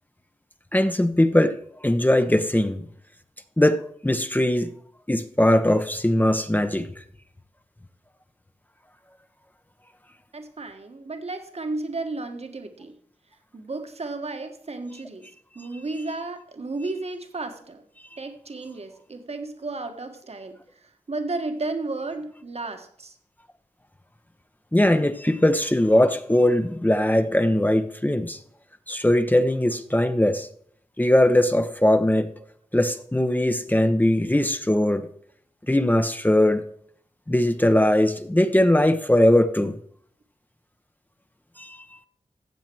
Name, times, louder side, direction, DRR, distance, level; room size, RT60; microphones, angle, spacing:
voice 1, 0.7-1.6 1.8-2.8 3.6-4.7 5.1-6.9 24.7-28.4 28.9-30.5 31.0-32.3 32.7-35.1 35.7-36.6 37.3-39.8 41.6-41.8, left 1 dB, 15° left, 0.8 m, -20 dB
voice 2, 10.3-12.9 13.5-15.3 15.5-17.8 18.2-20.6 21.1-23.1, right 3 dB, 55° right, 1.6 m, -33 dB
15.0 x 7.4 x 4.6 m
cardioid pair, 40°, 13 cm